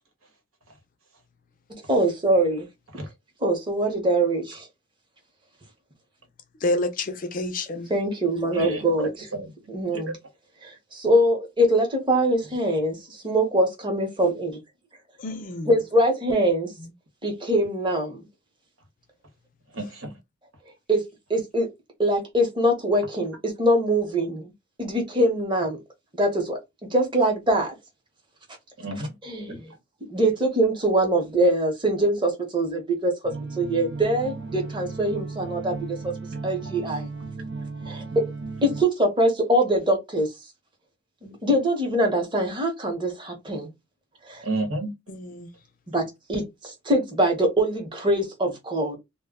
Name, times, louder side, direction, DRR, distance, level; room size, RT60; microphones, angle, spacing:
voice 1, 1.9-2.7 3.4-4.7 7.9-9.3 9.7-10.1 10.6-14.6 15.7-16.7 17.2-18.3 20.9-21.0 21.3-21.7 22.0-24.5 24.8-25.8 26.1-27.8 29.2-29.7 30.1-36.1 36.4-37.1 37.9-38.3 38.6-40.3 41.2-43.7 44.3-44.4 45.9-49.0, right 1 dB, 25° right, 0.8 m, -23 dB
voice 2, 6.6-7.9 15.2-15.8 16.8-16.9 45.1-45.5, left 2 dB, 40° left, 0.5 m, -29 dB
voice 3, 8.5-9.5 9.9-10.1 19.7-20.2 28.8-29.1 29.5-29.6 44.4-44.9, right 2 dB, 85° right, 1.1 m, -31 dB
sound 1, 33.2-38.8, right 3 dB, 60° right, 0.5 m, -35 dB
2.2 x 2.1 x 3.6 m
head